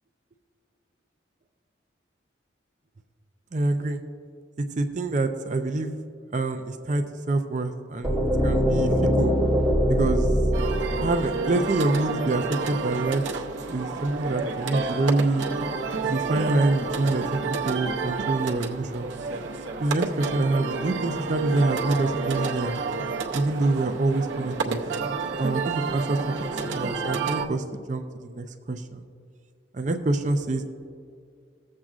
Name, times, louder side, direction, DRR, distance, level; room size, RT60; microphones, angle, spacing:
voice 1, 3.5-4.0 4.6-5.9 6.3-8.2 8.4-9.3 9.9-10.3 11.0-13.2 13.7-15.4 16.0-19.1 19.8-22.8 23.3-24.8 25.4-29.1 29.7-30.7, right 2 dB, 40° right, 7 dB, 0.4 m, -26 dB
sound 1, 8.0-11.9, equal, 5° left, 1.8 m, -23 dB
sound 2, 10.5-27.5, right 4 dB, 80° right, 0.7 m, -30 dB
18.5 x 7.4 x 2.4 m, 2.2 s
head